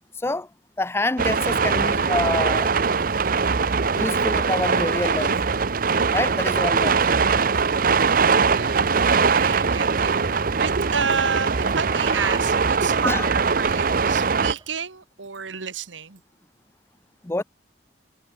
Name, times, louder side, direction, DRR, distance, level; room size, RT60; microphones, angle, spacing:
voice 1, 0.2-0.5 0.8-2.7 3.9-5.4 6.1-7.3 13.0-13.3 17.2-17.4, left 2 dB, 15° left, 0.5 m, -27 dB
sound 1, 1.2-14.5, right 5 dB, 50° right, 0.7 m, -21 dB
sound 2, 6.2-14.8, right 3 dB, 20° right, 7.8 m, -44 dB
voice 2, 8.5-16.2, right 6 dB, 85° right, 1.5 m, -30 dB
head